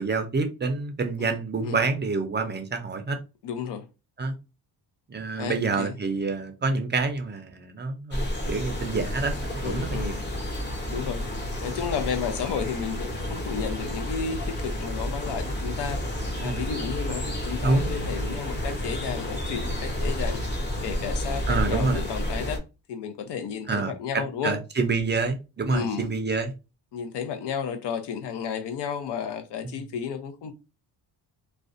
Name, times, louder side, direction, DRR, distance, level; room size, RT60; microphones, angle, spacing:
voice 1, 0.0-3.2 4.2-4.3 5.1-10.2 16.4-16.6 17.6-17.9 18.3-18.4 21.5-22.0 23.7-26.5 29.6-29.8, right 4 dB, 25° right, 0.4 m, -27 dB
voice 2, 1.2-1.8 3.4-3.9 5.4-6.0 9.6-10.2 10.9-11.2 11.6-16.0 16.4-20.4 20.8-22.6 22.9-24.6 25.7-26.1 26.9-30.5, left 7 dB, 75° left, 0.6 m, -32 dB
sound 1, 8.1-22.6, left 1 dB, 25° left, 0.7 m, -30 dB
2.4 x 2.1 x 2.4 m
cardioid pair, 95°, 41 cm